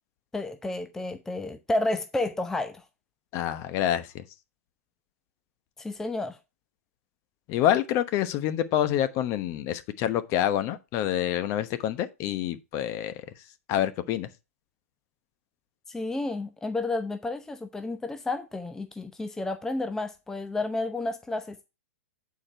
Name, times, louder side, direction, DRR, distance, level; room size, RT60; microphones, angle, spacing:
voice 1, 0.3-2.8 5.8-6.4 15.9-21.6, left 2 dB, 5° left, 0.7 m, -31 dB
voice 2, 3.3-4.2 7.5-13.1 13.7-14.3, left 11 dB, 35° left, 1.0 m, -27 dB
8.7 x 4.8 x 4.4 m
figure-of-eight pair, 110°, 8 cm